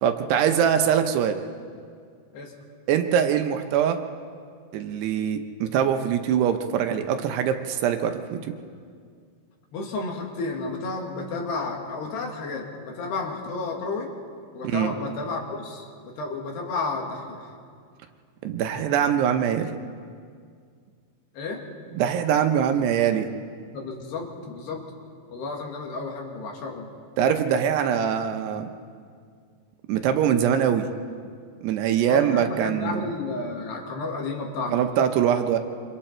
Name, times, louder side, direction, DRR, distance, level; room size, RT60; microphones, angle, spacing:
voice 1, 0.0-1.4 2.9-4.0 4.7-8.5 14.6-14.9 18.4-19.8 21.9-23.3 27.2-28.7 29.9-30.9 31.6-33.1 34.7-35.6, right 9 dB, 75° right, 7 dB, 2.8 m, -23 dB
voice 2, 9.7-14.1 14.5-17.4 21.3-21.6 23.7-24.8 25.3-26.9 32.1-34.8, left 3 dB, 70° left, 1 dB, 4.1 m, -32 dB
27.0 x 26.0 x 4.4 m, 2.1 s
omnidirectional pair, 5.2 m